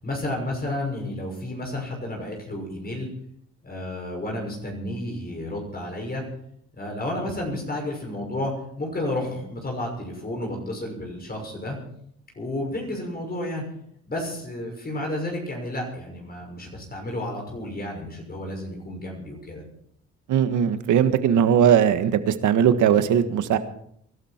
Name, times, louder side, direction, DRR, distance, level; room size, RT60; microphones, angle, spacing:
voice 1, 0.0-3.1 3.6-6.2 6.8-8.5 8.8-11.8 12.4-13.6 14.1-19.6, left 1 dB, 30° left, 1 dB, 6.3 m, -31 dB
voice 2, 20.3-23.6, right 9 dB, 80° right, 10 dB, 1.6 m, -19 dB
23.0 x 12.5 x 4.5 m, 0.68 s
cardioid pair, 90°, 30 cm